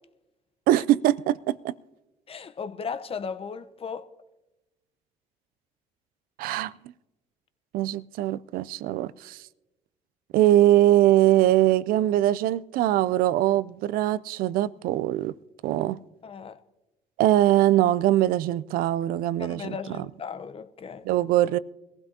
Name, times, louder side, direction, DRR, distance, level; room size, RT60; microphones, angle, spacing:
voice 1, 0.7-1.7 6.4-6.7 7.7-9.4 10.3-15.3 15.6-16.0 17.2-20.1 21.0-21.6, right 13 dB, 70° right, 0.4 m, -22 dB
voice 2, 2.3-4.1 16.2-16.6 19.4-21.0, left 6 dB, 40° left, 0.8 m, -36 dB
22.0 x 15.0 x 2.8 m
supercardioid pair, 70°, 15 cm